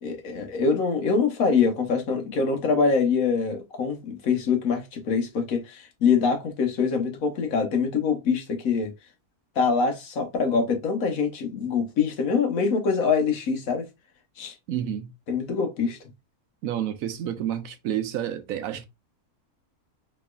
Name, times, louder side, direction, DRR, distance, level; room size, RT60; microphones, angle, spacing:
voice 1, 0.0-8.9 9.6-13.9 14.4-14.5 15.3-16.0, left 5 dB, 65° left, 1.3 m, -24 dB
voice 2, 14.7-15.1 16.6-18.8, right 10 dB, 75° right, 0.9 m, -29 dB
4.1 x 3.0 x 2.3 m
omnidirectional pair, 1.6 m